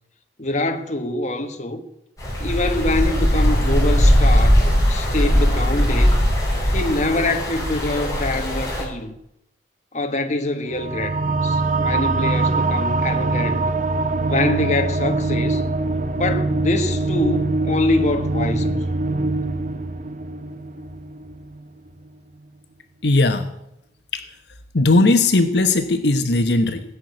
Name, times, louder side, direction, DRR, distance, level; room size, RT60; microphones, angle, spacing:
voice 1, 0.4-1.8 2.4-6.2 6.7-9.1 9.9-13.7 14.3-15.6 16.2-18.8, left 2 dB, 40° left, 1.4 m, -24 dB
sound 1, 2.2-8.8, equal, 20° left, 5.7 m, -19 dB
sound 2, 10.7-21.6, right 3 dB, 45° right, 0.7 m, -23 dB
voice 2, 23.0-23.5 24.1-24.2 24.7-26.8, left 2 dB, 70° left, 1.0 m, -17 dB
17.5 x 6.6 x 9.7 m
head